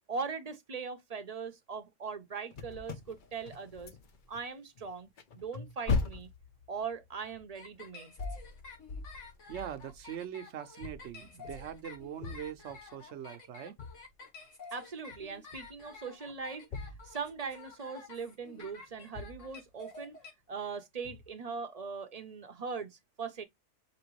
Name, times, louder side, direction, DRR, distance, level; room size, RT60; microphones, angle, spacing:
voice 1, 0.1-3.9 4.3-6.3 6.7-8.1 14.7-20.2 20.5-23.4, right 5 dB, 40° right, 0.7 m, -40 dB
sound 1, 2.5-4.4 4.8-10.3 10.8-13.0 13.8-14.1 15.1-16.0 16.3-17.7 18.6-18.7 19.1-19.7 21.0-21.3, left 4 dB, 50° left, 0.8 m, -40 dB
sound 2, 7.5-20.3, left 4 dB, 80° left, 1.9 m, -50 dB
voice 2, 9.5-13.8, right 10 dB, 70° right, 0.9 m, -42 dB
5.1 x 3.0 x 3.0 m
omnidirectional pair, 1.3 m